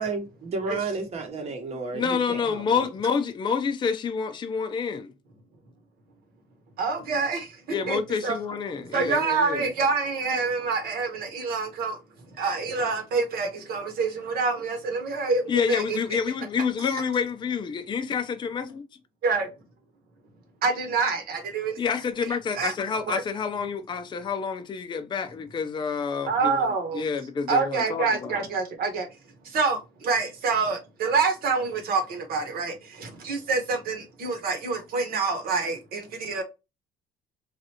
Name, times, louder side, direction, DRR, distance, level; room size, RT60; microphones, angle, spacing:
voice 1, 0.0-2.9, right 3 dB, 40° right, 1.0 m, -32 dB
voice 2, 1.9-5.1 7.7-9.7 15.5-18.8 21.8-28.4, left 6 dB, 25° left, 0.5 m, -28 dB
voice 3, 6.8-7.6 7.9-8.4 8.9-12.0 12.4-16.0 19.2-19.5 20.6-21.8 22.5-22.7 23.1-23.2 26.3-27.0 27.5-29.1 29.4-36.4, right 4 dB, 65° right, 1.1 m, -27 dB
3.2 x 2.5 x 2.8 m
cardioid pair, 110°, 17 cm